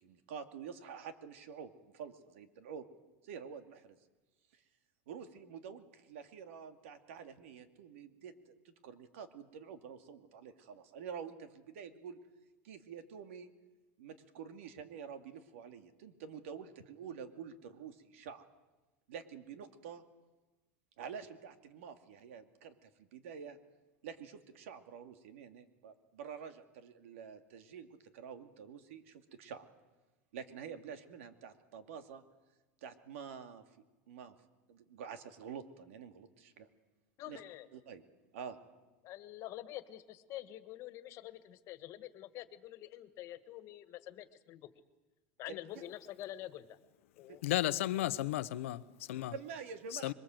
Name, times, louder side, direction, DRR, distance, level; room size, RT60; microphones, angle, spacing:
voice 1, 0.0-2.9 3.2-4.0 5.1-8.3 8.6-12.2 12.6-13.5 14.0-18.4 19.1-20.0 21.0-23.6 24.0-29.7 30.3-32.2 32.8-33.6 34.1-34.4 34.7-36.7 37.3-37.4 37.7-38.0 38.3-38.6 45.5-45.6 47.3-47.4 49.3-50.1, right 7 dB, 85° right, 2.5 m, -48 dB
voice 2, 37.2-37.7 39.0-44.7 45.4-46.6 47.2-47.4, left 14 dB, 45° left, 1.7 m, -47 dB
voice 3, 47.4-49.3 49.9-50.1, left 15 dB, 85° left, 0.9 m, -34 dB
26.5 x 22.5 x 7.9 m
supercardioid pair, 135°, 7 cm